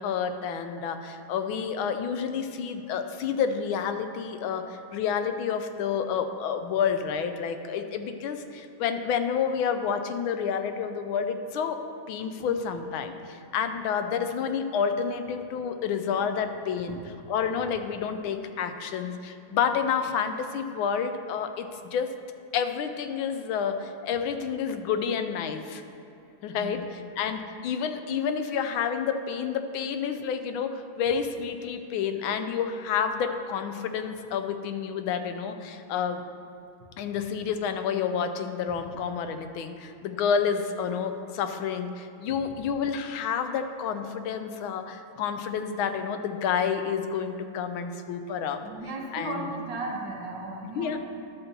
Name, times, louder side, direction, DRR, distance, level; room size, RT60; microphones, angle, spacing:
voice 1, 0.0-11.8 12.1-17.0 17.3-22.1 22.5-25.8 26.4-36.2 37.0-48.6 49.1-49.5 50.8-51.0, left 7 dB, 90° left, 8 dB, 1.5 m, -29 dB
voice 2, 48.6-51.0, right 2 dB, 65° right, 0 dB, 1.8 m, -35 dB
11.5 x 4.4 x 6.7 m, 2.8 s
omnidirectional pair, 2.2 m